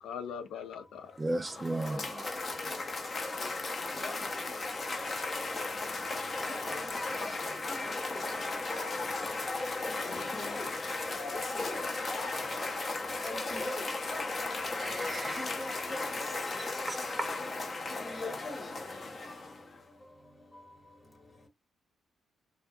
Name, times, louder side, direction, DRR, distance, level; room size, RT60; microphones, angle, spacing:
voice 1, 0.0-1.2 6.1-6.5 9.7-10.6, left 7 dB, 85° left, 0.4 m, -43 dB
Cheering / Applause, 1.2-19.8, left 3 dB, 40° left, 0.6 m, -36 dB
voice 2, 1.2-2.4 14.8-15.4 16.9-17.3, right 2 dB, 20° right, 0.3 m, -35 dB
voice 3, 6.5-7.8 8.3-8.5 10.0-10.7 11.3-11.7 13.2-13.8 15.4-16.1 17.9-18.6, left 2 dB, 20° left, 1.1 m, -42 dB
2.7 x 2.3 x 2.3 m
cardioid pair, 100°, 0 cm